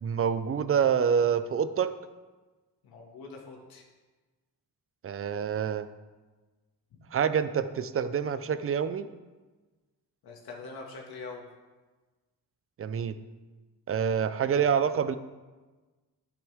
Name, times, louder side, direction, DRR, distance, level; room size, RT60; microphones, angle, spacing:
voice 1, 0.0-1.9 5.0-5.9 7.1-9.1 12.8-13.2 13.9-15.2, right 7 dB, 40° right, 12 dB, 0.6 m, -27 dB
voice 2, 2.8-3.8 10.2-11.4, left 4 dB, 85° left, -1 dB, 2.0 m, -43 dB
9.9 x 9.9 x 3.6 m, 1.3 s
cardioid pair, 110°, 36 cm